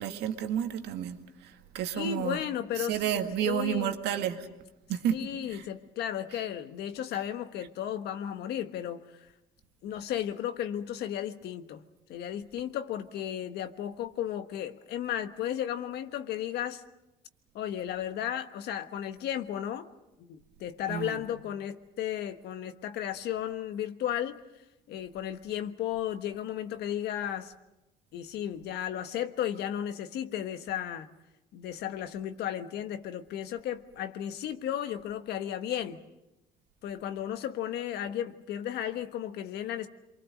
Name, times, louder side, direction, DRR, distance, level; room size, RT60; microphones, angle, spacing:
voice 1, 0.0-2.4 2.8-4.5 4.9-5.2 5.5-5.6 20.9-21.2, right 10 dB, 85° right, 1.9 m, -31 dB
voice 2, 1.9-3.9 5.1-9.0 9.8-11.8 12.1-16.8 17.5-19.9 20.2-24.4 24.9-27.5 28.1-31.1 31.5-36.0 36.8-39.9, left 10 dB, 75° left, 1.3 m, -34 dB
28.0 x 23.5 x 6.4 m
cardioid pair, 110°, 17 cm